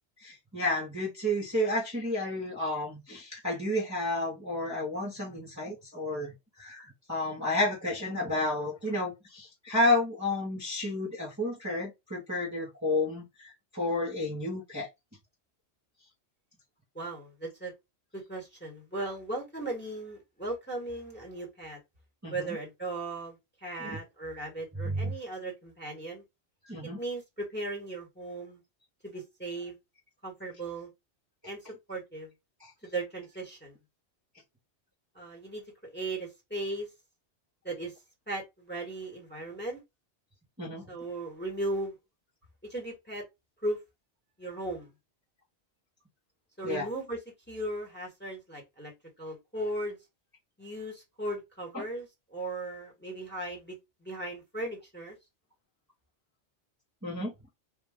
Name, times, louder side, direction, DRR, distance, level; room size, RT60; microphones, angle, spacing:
voice 1, 0.2-6.3 6.6-14.9 22.2-22.6 23.8-24.0 24.8-25.1 26.7-27.0 32.6-32.7 40.6-40.8 46.6-46.9 51.7-51.8 57.0-57.3, left 1 dB, 15° right, 1.1 m, -31 dB
voice 2, 16.9-17.7 18.1-21.8 22.3-26.2 27.0-28.6 29.0-29.7 30.2-30.9 31.5-31.6 31.9-32.3 32.8-33.7 35.1-36.9 37.6-37.9 38.3-39.8 40.9-41.9 42.7-43.2 43.6-43.8 44.4-44.9 46.6-47.2 47.5-48.9 49.2-50.0 50.6-53.8 54.0-55.1, right 2 dB, 10° left, 1.4 m, -37 dB
3.3 x 2.5 x 3.5 m
omnidirectional pair, 1.1 m